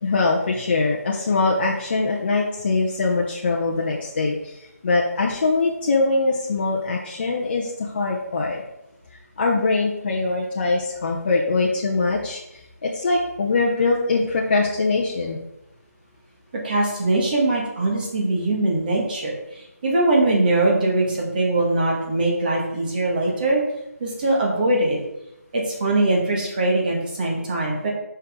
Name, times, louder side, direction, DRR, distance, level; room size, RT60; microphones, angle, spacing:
voice 1, 0.0-8.6 9.4-15.4, left 3 dB, 40° left, -2 dB, 0.7 m, -22 dB
voice 2, 16.5-23.6 24.0-25.0 25.5-27.9, right 2 dB, 35° right, -1 dB, 1.7 m, -22 dB
6.5 x 5.6 x 3.7 m, 0.87 s
figure-of-eight pair, 165°, 9 cm